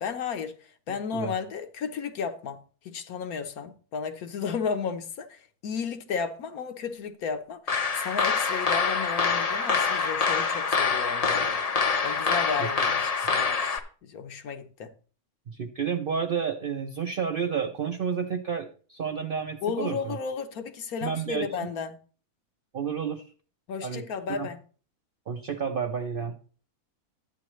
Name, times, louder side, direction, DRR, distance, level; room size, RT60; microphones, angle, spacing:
voice 1, 0.0-2.6 2.8-11.5 12.0-14.9 19.6-22.0 23.7-24.6, left 6 dB, 75° left, 1.3 m, -33 dB
sound 1, 7.7-13.8, left 5 dB, 45° left, 0.5 m, -25 dB
voice 2, 15.5-20.2 21.0-21.5 22.7-23.2 23.8-24.0 24.3-24.5 25.3-26.4, right 6 dB, 60° right, 0.6 m, -30 dB
11.5 x 8.7 x 3.1 m
omnidirectional pair, 1.6 m